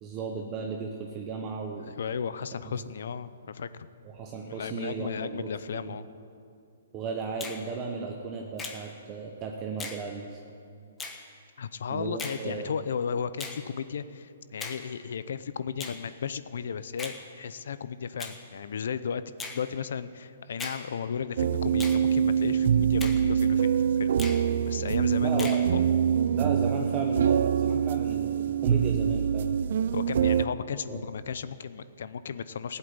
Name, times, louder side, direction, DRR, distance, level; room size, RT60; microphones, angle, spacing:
voice 1, 0.0-1.9 2.6-2.7 4.0-6.0 6.9-10.4 11.9-12.7 25.2-25.7 26.3-29.5 30.9-31.0, right 5 dB, 20° right, 1 dB, 0.9 m, -35 dB
voice 2, 2.0-3.9 4.5-6.1 11.6-19.2 19.5-24.1 24.7-25.8 29.9-32.8, left 6 dB, 65° left, 14 dB, 0.6 m, -34 dB
Finger snapping, 7.4-7.6 8.6-8.8 9.8-10.0 11.0-11.2 12.2-12.4 13.4-13.6 14.6-14.8 15.8-16.0 17.0-17.2 18.2-18.4 19.4-19.6 20.6-20.8 21.8-22.0 23.0-23.2 24.2-24.4 25.4-25.6, left 4 dB, 10° left, 1.1 m, -38 dB
sound 1, 21.4-30.4, right 8 dB, 55° right, 0.4 m, -24 dB
15.0 x 8.1 x 9.6 m, 2.6 s
hypercardioid pair, 165°, 0 cm